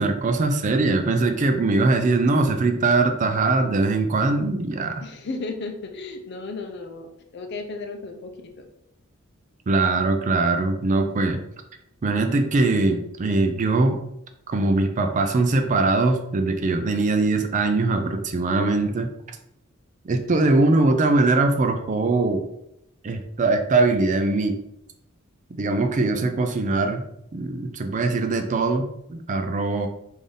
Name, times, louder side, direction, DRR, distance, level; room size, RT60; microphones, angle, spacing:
voice 1, 0.0-5.0 9.7-11.4 12.0-14.0 14.5-19.1 20.0-22.4 23.0-24.6 25.5-27.0 27.3-29.9, right 3 dB, 35° right, 6 dB, 0.4 m, -21 dB
voice 2, 5.0-8.7, left 3 dB, 55° left, 5 dB, 0.5 m, -34 dB
3.4 x 2.6 x 3.7 m, 0.79 s
head